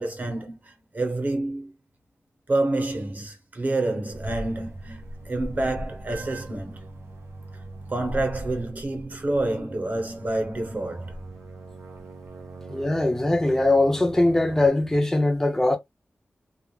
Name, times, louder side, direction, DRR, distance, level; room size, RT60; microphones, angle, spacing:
voice 1, 0.0-1.7 2.5-6.8 7.9-11.2, right 2 dB, 40° right, 0.9 m, -28 dB
sound 1, 4.1-14.7, right 2 dB, 80° right, 0.6 m, -40 dB
voice 2, 12.7-15.8, left 2 dB, 10° left, 0.6 m, -21 dB
2.4 x 2.0 x 3.1 m
wide cardioid pair, 110°, 4 cm